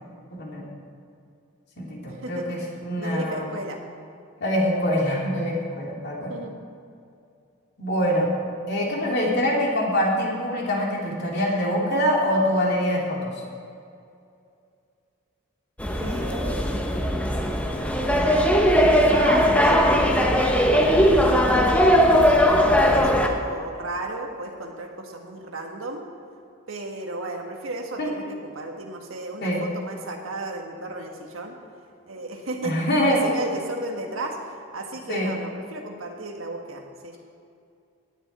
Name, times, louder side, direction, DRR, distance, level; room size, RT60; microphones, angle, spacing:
voice 1, 0.3-0.6 1.8-3.4 4.4-6.3 7.8-8.3 8.7-13.3 28.0-28.1 29.4-29.6 32.6-33.2 35.1-35.3, equal, 50° left, -3 dB, 2.8 m, -24 dB
voice 2, 2.1-2.5 3.0-3.8 6.3-6.6 15.9-17.2 19.1-22.4 22.8-26.0 26.7-31.6 32.1-32.8 33.1-37.2, right 2 dB, 75° right, 2 dB, 1.6 m, -34 dB
sound 1, 15.8-23.3, equal, 5° left, 0.9 m, -19 dB
18.0 x 10.0 x 4.3 m, 2.4 s
head